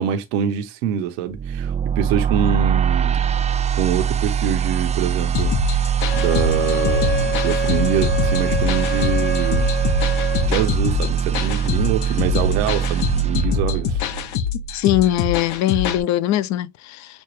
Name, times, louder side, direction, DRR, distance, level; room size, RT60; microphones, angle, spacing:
voice 1, 0.0-3.2 3.7-5.5 6.1-9.7 10.4-14.0, right 9 dB, 90° right, 0.9 m, -25 dB
sound 1, 1.3-14.4, right 8 dB, 20° right, 0.4 m, -22 dB
sound 2, 5.3-16.0, left 7 dB, 85° left, 0.9 m, -25 dB
Wind instrument woodwind instrument, 6.0-10.5, left 2 dB, 35° left, 1.0 m, -27 dB
voice 2, 14.7-17.1, left 13 dB, 60° left, 0.6 m, -21 dB
6.3 x 2.3 x 3.2 m
supercardioid pair, 85°, 33 cm